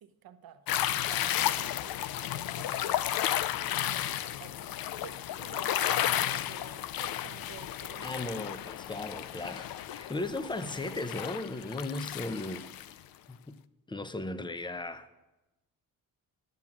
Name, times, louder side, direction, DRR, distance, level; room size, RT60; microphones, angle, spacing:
voice 1, 0.0-0.6 0.9-3.1 3.7-4.7 5.0-8.4, right 9 dB, 75° right, 1.0 m, -50 dB
sound 1, 0.7-12.9, left 12 dB, 75° left, 0.5 m, -33 dB
voice 2, 8.0-12.7 13.3-13.6 13.9-15.2, left 2 dB, 15° left, 0.8 m, -37 dB
11.5 x 7.5 x 7.3 m
cardioid pair, 80°, 36 cm